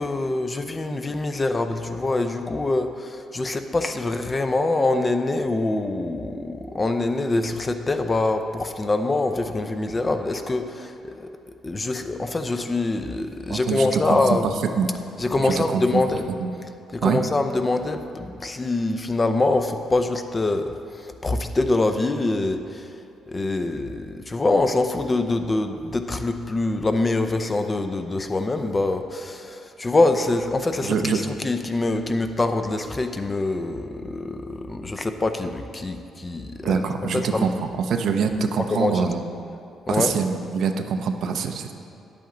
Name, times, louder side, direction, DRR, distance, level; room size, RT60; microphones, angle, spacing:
voice 1, 0.0-11.3 11.6-14.5 15.2-16.3 16.9-22.9 23.3-31.1 31.4-36.8 37.1-37.6 38.7-39.1 39.9-40.1, left 2 dB, 25° left, 7 dB, 0.6 m, -24 dB
voice 2, 13.5-14.2 14.8-14.9 15.4-16.0 16.4-16.5 17.0-17.2 30.8-31.2 36.6-39.2 39.9-41.7, right 6 dB, 70° right, 6 dB, 0.6 m, -24 dB
10.0 x 8.5 x 3.8 m, 2.6 s
cardioid pair, 90°, 0 cm